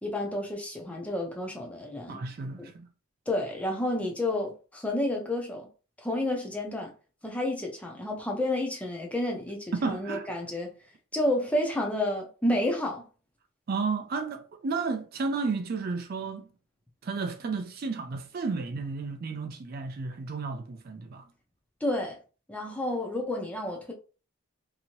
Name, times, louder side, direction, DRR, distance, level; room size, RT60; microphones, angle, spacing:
voice 1, 0.0-2.2 2.6-2.7 3.3-5.7 6.0-6.9 7.2-10.7 11.1-13.0 21.8-22.2 22.5-23.9, left 1 dB, 5° left, 0.5 m, -30 dB
voice 2, 2.1-2.8 9.7-10.3 13.7-16.5 17.0-21.3, right 4 dB, 45° right, 0.4 m, -32 dB
2.8 x 2.6 x 2.9 m
head